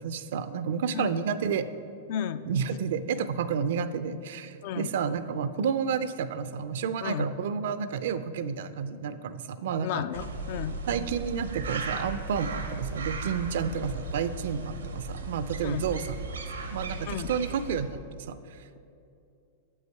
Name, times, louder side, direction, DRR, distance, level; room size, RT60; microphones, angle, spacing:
voice 1, 0.0-1.7 2.5-10.0 10.9-16.2 16.7-18.0 18.3-18.6, right 6 dB, 65° right, 13 dB, 0.4 m, -30 dB
voice 2, 2.1-2.5 4.6-4.9 7.0-7.3 9.8-10.8 15.6-15.9 17.1-17.3, left 10 dB, 55° left, 13 dB, 0.3 m, -33 dB
sound 1, 10.1-17.8, right 3 dB, 90° right, 0.8 m, -36 dB
7.6 x 5.4 x 4.6 m, 2.6 s
hypercardioid pair, 110°, 0 cm